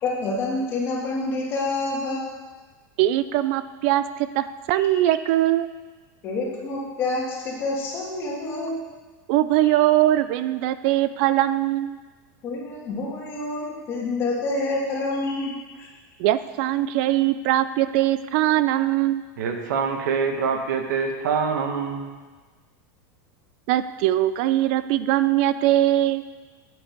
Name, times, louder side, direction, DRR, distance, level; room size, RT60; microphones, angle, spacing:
voice 1, 0.0-2.2 4.7-4.8 6.2-8.8 9.6-9.7 12.4-15.9, left 2 dB, 25° left, -3 dB, 2.1 m, -28 dB
voice 2, 3.0-5.7 9.3-12.0 16.2-19.2 23.7-26.2, right 14 dB, 40° right, 13 dB, 0.3 m, -21 dB
voice 3, 19.4-22.0, right 5 dB, 80° right, 4 dB, 1.6 m, -25 dB
9.4 x 8.7 x 5.3 m, 1.3 s
supercardioid pair, 180°, 10 cm